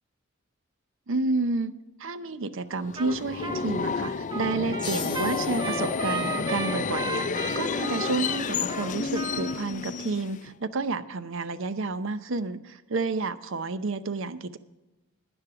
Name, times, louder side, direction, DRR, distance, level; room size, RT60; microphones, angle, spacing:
voice 1, 1.1-1.7 2.0-14.6, right 3 dB, 65° right, 13 dB, 0.7 m, -30 dB
Subway metro underground, 2.8-10.5, left 5 dB, 40° left, 0.4 m, -30 dB
Trumpet, 3.0-3.2 3.4-9.6, right 3 dB, 20° right, 0.8 m, -35 dB
sound 1, 4.8-8.0, left 7 dB, 20° left, 1.1 m, -41 dB
12.0 x 9.9 x 4.8 m, 1.1 s
head